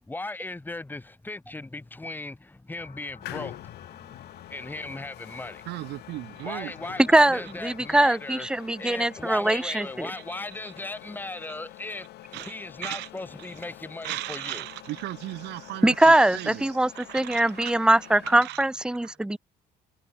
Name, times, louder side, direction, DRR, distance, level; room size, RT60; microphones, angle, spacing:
voice 1, 0.0-5.6 6.4-14.7, left 2 dB, 10° left, 2.5 m, -38 dB
sound 1, 2.8-8.1, left 8 dB, 45° left, 6.7 m, -51 dB
sound 2, 3.2-18.5, left 16 dB, 80° left, 3.4 m, -46 dB
voice 2, 5.7-6.7 10.1-10.2 10.6-10.7 12.3-12.5 12.8-13.1 14.0-17.7 18.2-18.7 19.0-19.1, right 18 dB, 85° right, 5.2 m, -36 dB
voice 3, 7.1-10.1 15.8-19.4, right 1 dB, 5° right, 0.7 m, -22 dB
cardioid pair, 110°, 17 cm